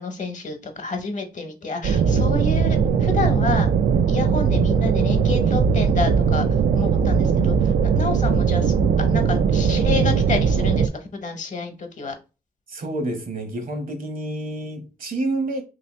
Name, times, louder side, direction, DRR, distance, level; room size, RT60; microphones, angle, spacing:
voice 1, 0.0-3.7 4.1-6.5 6.7-12.2, left 3 dB, 50° left, 0.9 m, -29 dB
sound 1, 1.8-10.9, right 6 dB, 85° right, 0.4 m, -19 dB
voice 2, 12.7-15.6, right 2 dB, 60° right, 1.0 m, -28 dB
3.3 x 2.9 x 3.0 m
cardioid pair, 95°, 16 cm